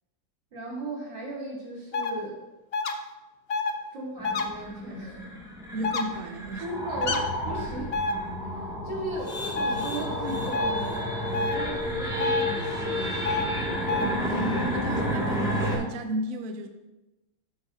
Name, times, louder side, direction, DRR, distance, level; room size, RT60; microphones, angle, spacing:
voice 1, 0.5-2.4 3.9-5.2 6.6-8.0 8.4-8.5 8.8-13.2, right 2 dB, 85° right, -7 dB, 4.1 m, -36 dB
sound 1, 1.9-2.1 2.7-2.9 3.5-3.7 4.2-4.4 5.8-6.0 7.0-7.2 7.9-8.1 9.5-9.8 10.5-10.7 11.3-11.6 12.2-12.4 13.2-13.4 13.9-14.0, left 3 dB, 65° left, 0.6 m, -27 dB
sound 2, 4.2-15.8, left 1 dB, ahead, 2.1 m, -31 dB
voice 2, 5.7-6.7 14.0-16.7, right 2 dB, 60° right, 6 dB, 1.0 m, -33 dB
12.5 x 7.7 x 2.8 m, 1.0 s
omnidirectional pair, 2.0 m